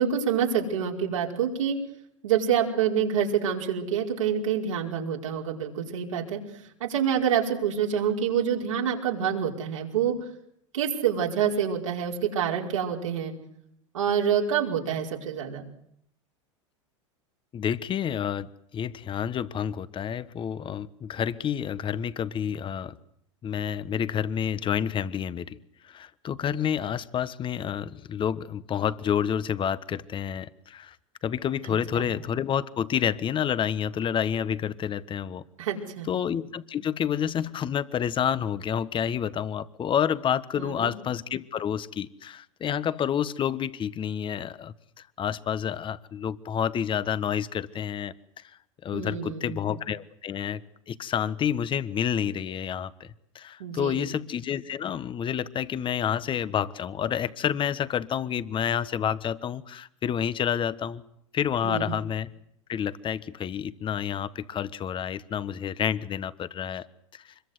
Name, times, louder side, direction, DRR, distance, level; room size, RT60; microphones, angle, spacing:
voice 1, 0.0-1.8 2.2-6.4 6.8-10.1 10.7-13.3 13.9-15.6 31.9-32.0 35.6-36.1 40.6-40.9 48.9-49.6 53.6-54.0 61.6-62.0, right 8 dB, 80° right, -1 dB, 5.1 m, -27 dB
voice 2, 17.5-23.0 23.4-25.6 25.8-31.0 31.2-35.4 36.1-44.7 45.2-48.4 48.8-61.0 61.3-62.3 62.7-66.9 67.1-67.2, left 8 dB, 30° left, 15 dB, 1.3 m, -29 dB
25.0 x 22.0 x 8.2 m, 0.73 s
hypercardioid pair, 95°, 16 cm